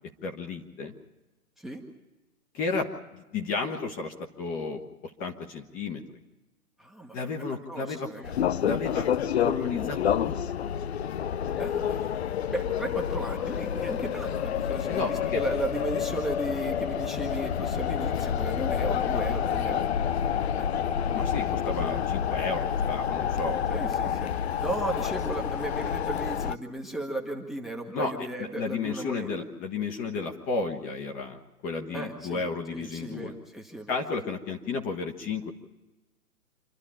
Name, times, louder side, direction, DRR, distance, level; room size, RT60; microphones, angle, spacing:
voice 1, 0.2-0.9 2.5-4.8 5.2-6.0 7.1-8.1 8.6-9.1 9.4-10.4 10.6-10.7 14.9-15.4 21.1-23.6 27.9-33.3 33.9-35.5, left 4 dB, 20° left, 3 dB, 1.2 m, -33 dB
voice 2, 6.8-8.3 11.6-19.8 20.6-20.7 23.7-24.3 24.6-29.5 31.9-32.4 32.7-34.0, right 2 dB, ahead, 3 dB, 1.2 m, -36 dB
sound 1, 8.2-26.6, left 8 dB, 45° left, 0.6 m, -28 dB
27.0 x 12.0 x 8.8 m, 1.1 s
figure-of-eight pair, 130°, 45 cm